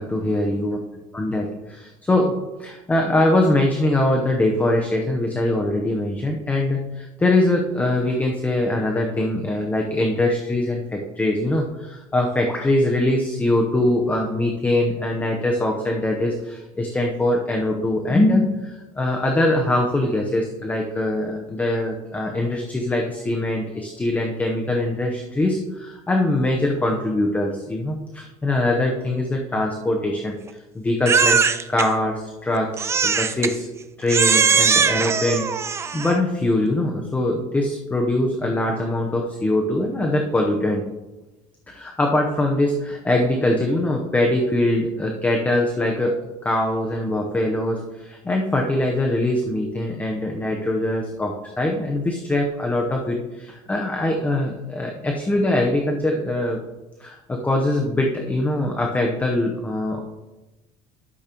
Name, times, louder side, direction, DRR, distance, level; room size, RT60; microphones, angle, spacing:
voice 1, 0.0-0.8 1.1-2.3 2.6-30.4 30.7-31.4 31.7-33.6 34.0-40.8 41.7-56.6 57.0-60.0, left 1 dB, 10° left, 2 dB, 0.8 m, -22 dB
Crying sobbing, 31.1-31.9 32.8-33.5 34.1-36.2, right 6 dB, 20° right, 0.4 m, -20 dB
12.0 x 6.6 x 3.0 m, 1.1 s
cardioid pair, 135°, 14 cm